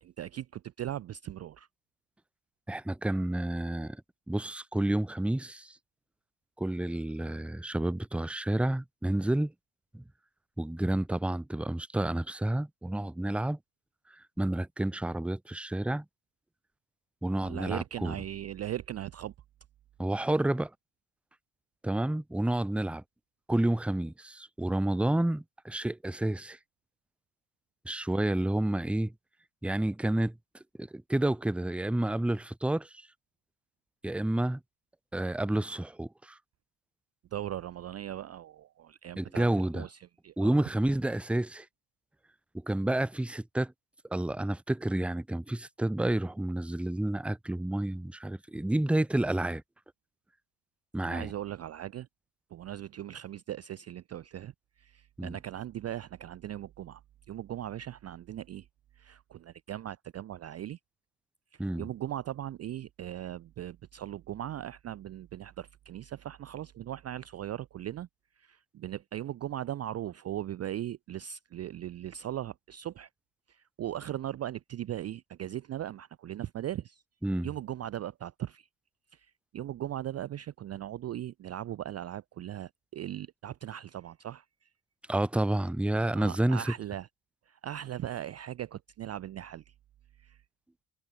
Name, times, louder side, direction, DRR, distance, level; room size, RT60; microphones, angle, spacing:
voice 1, 0.0-1.7 17.4-19.3 37.3-40.6 51.0-52.1 52.5-54.5 54.8-57.0 57.3-58.7 59.0-60.8 61.5-68.1 68.4-73.1 73.5-77.0 77.4-78.7 79.1-84.7 86.1-87.1 87.5-89.7 90.2-90.4, right 12 dB, 35° right, 0.4 m, -39 dB
voice 2, 2.7-4.0 4.3-5.8 6.6-9.5 9.9-10.0 10.6-13.6 14.2-16.0 17.2-18.2 20.0-20.7 21.8-23.0 23.5-26.6 27.8-29.1 29.6-30.4 30.8-33.1 34.0-34.6 35.1-36.4 39.2-39.9 40.4-41.7 42.5-43.7 44.1-49.6 50.9-51.3 55.2-55.4 61.6-61.9 77.2-77.5 85.1-86.7, right 1 dB, 5° right, 0.7 m, -30 dB
cardioid pair, 110°, 44 cm